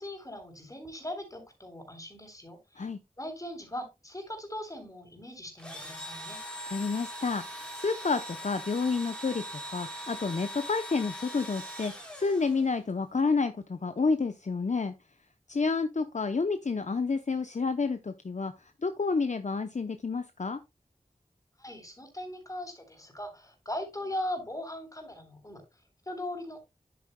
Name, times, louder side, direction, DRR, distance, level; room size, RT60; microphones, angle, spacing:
voice 1, 0.0-2.9 3.2-6.4 21.6-26.6, left 1 dB, 25° left, 3.6 m, -39 dB
Engine / Drill, 5.6-12.9, equal, 5° left, 2.9 m, -41 dB
voice 2, 6.7-9.4 9.7-14.9 15.5-18.5 18.8-20.6, left 4 dB, 55° left, 0.7 m, -29 dB
10.0 x 8.5 x 2.2 m
wide cardioid pair, 60°, 15 cm